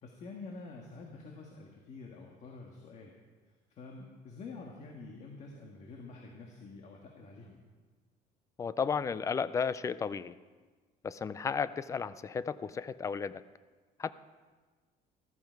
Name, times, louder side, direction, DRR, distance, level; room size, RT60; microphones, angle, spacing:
voice 1, 0.0-3.1 3.7-7.6, left 3 dB, 45° left, 1 dB, 1.7 m, -48 dB
voice 2, 8.6-10.3 11.0-13.4 14.0-14.1, left 6 dB, 20° left, 15 dB, 0.4 m, -33 dB
14.5 x 14.5 x 4.6 m, 1.4 s
cardioid pair, 160°, 16 cm